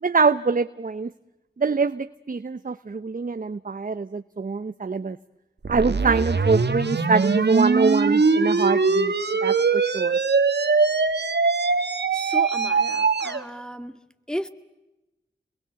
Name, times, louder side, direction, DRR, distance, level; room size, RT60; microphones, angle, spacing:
voice 1, 0.0-1.1 1.6-5.2 5.7-9.1 9.4-10.2, right 4 dB, 50° right, 12 dB, 0.8 m, -24 dB
sound 1, 5.6-13.4, right 4 dB, 70° right, 1.7 m, -22 dB
voice 2, 12.1-14.0 14.3-14.5, equal, 5° left, 9 dB, 2.1 m, -34 dB
29.0 x 22.0 x 8.2 m, 1.0 s
cardioid pair, 40°, 18 cm